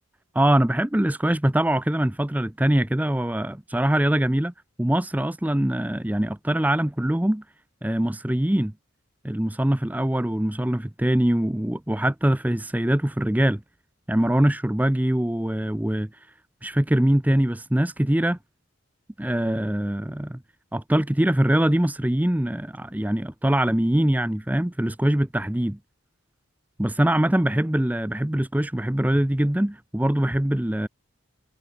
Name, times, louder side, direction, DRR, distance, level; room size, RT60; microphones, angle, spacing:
voice 1, 0.3-4.5 4.8-7.4 7.8-8.7 9.2-13.6 14.1-16.1 16.6-18.4 19.2-20.4 20.7-25.8 26.8-30.9, right 1 dB, 5° right, 0.5 m, -23 dB
head